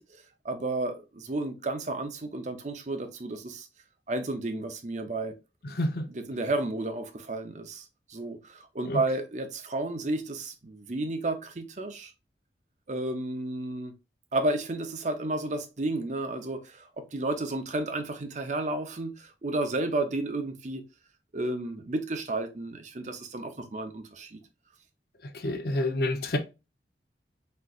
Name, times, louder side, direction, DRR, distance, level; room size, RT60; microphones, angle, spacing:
voice 1, 0.0-3.7 4.1-5.3 6.1-12.1 12.9-13.9 14.3-20.8 21.3-24.4, right 2 dB, 45° right, 0.7 m, -32 dB
voice 2, 5.7-6.0 8.9-9.0 25.3-26.4, left 1 dB, 60° left, 0.7 m, -28 dB
4.3 x 3.8 x 2.4 m
head